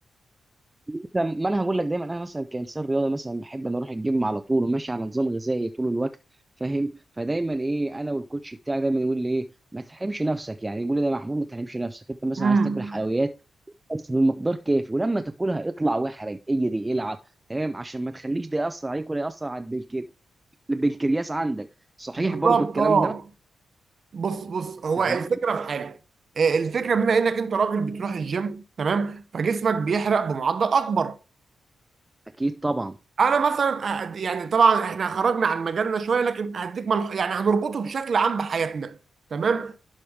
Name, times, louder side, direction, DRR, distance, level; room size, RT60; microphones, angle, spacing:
voice 1, 0.9-6.1 6.6-9.5 9.7-13.3 13.9-17.2 17.5-20.0 20.7-21.7 22.0-23.1 25.1-25.3 32.4-33.0, right 2 dB, 15° right, 0.4 m, -27 dB
voice 2, 12.4-13.0 22.2-23.2 24.1-26.0 26.4-31.2 33.2-39.0 39.3-39.7, right 5 dB, 50° right, 0.7 m, -24 dB
11.5 x 5.0 x 3.2 m
wide cardioid pair, 130°, 0 cm